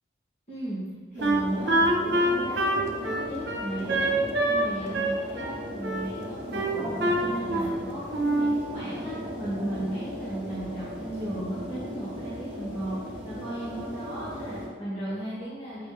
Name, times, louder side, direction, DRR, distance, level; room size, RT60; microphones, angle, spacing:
voice 1, 0.5-0.8 1.1-4.2 4.5-6.9 7.2-15.9, right 1 dB, 35° left, -12 dB, 2.4 m, -36 dB
sound 1, 1.2-14.7, equal, 5° right, 2.6 m, -37 dB
Wind instrument woodwind instrument, 1.2-4.7 4.9-6.1 6.5-7.8 8.1-8.6, right 1 dB, 60° right, 1.2 m, -25 dB
9.0 x 6.5 x 3.5 m, 1.4 s
head